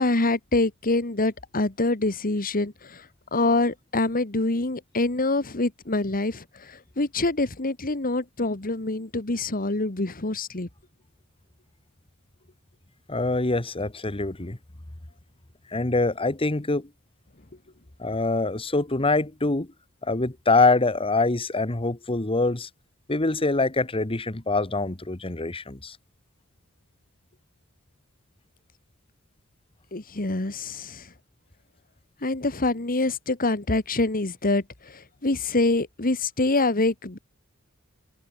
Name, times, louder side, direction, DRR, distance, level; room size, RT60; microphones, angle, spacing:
voice 1, 0.0-10.7 29.9-31.1 32.2-37.2, left 2 dB, 40° left, 1.8 m, -25 dB
voice 2, 13.1-14.6 15.7-16.9 18.0-19.7 20.0-22.7 23.1-26.0, left 3 dB, 25° left, 1.4 m, -24 dB
head